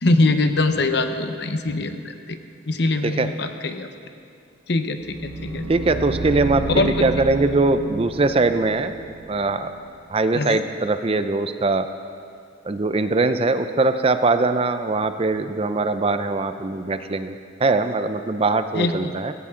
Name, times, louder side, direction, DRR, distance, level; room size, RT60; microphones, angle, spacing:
voice 1, 0.0-2.4 2.7-3.9 4.7-5.7 6.7-6.9 10.3-10.6 18.7-19.1, left 2 dB, 60° left, 7 dB, 0.9 m, -22 dB
sound 1, 5.0-10.0, right 2 dB, 90° right, 0.8 m, -31 dB
voice 2, 5.7-8.9 9.3-9.7 10.1-11.9 12.7-19.3, right 3 dB, 30° right, 10 dB, 0.5 m, -21 dB
17.5 x 16.5 x 3.7 m, 2.3 s
head